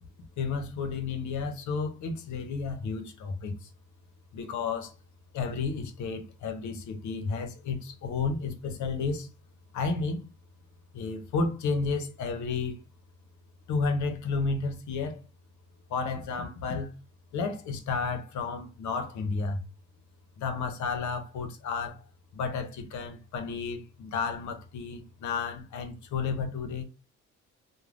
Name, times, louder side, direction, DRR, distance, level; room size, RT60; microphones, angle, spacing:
voice 1, 0.4-3.7 4.3-4.9 5.3-9.3 9.7-10.3 10.9-12.8 13.7-15.2 15.9-16.9 17.3-19.6 20.4-22.1 22.3-26.8, left 4 dB, 75° left, 0.7 m, -32 dB
3.2 x 2.2 x 2.4 m
cardioid pair, 90°, 30 cm